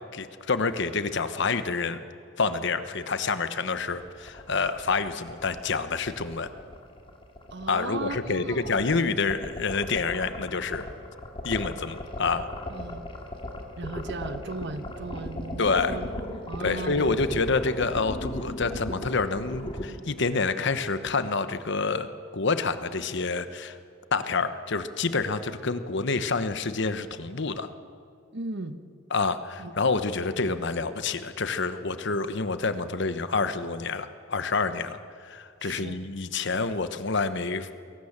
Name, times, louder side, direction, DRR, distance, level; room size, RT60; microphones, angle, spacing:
voice 1, 0.1-2.0 2.4-6.5 7.7-10.8 11.4-12.5 15.6-16.0 16.6-23.8 24.1-27.7 29.1-35.0 35.2-37.7, left 4 dB, 60° left, 11 dB, 1.1 m, -28 dB
sound 1, 4.0-19.8, left 1 dB, 25° left, 2.6 m, -37 dB
voice 2, 7.5-8.8 12.7-13.1 13.8-16.1 16.5-17.4 28.3-28.8 29.6-29.8 35.6-36.1, right 2 dB, 60° right, 10 dB, 1.2 m, -37 dB
21.5 x 18.5 x 7.4 m, 2.4 s
head